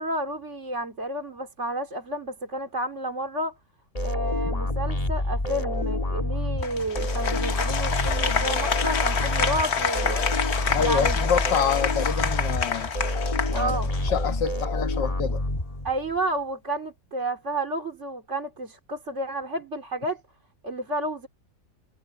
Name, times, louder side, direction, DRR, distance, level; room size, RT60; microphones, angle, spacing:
voice 1, 0.0-3.6 4.0-10.2 10.8-11.2 13.5-13.9 15.8-20.2 20.6-21.3, right 1 dB, 40° right, 2.9 m, -31 dB
sound 1, 3.9-16.2, left 1 dB, 20° left, 2.2 m, -28 dB
Applause, 6.6-14.2, left 6 dB, 45° left, 1.2 m, -28 dB
voice 2, 10.7-12.9 13.5-15.4, left 7 dB, 85° left, 2.1 m, -27 dB
omnidirectional pair, 1.9 m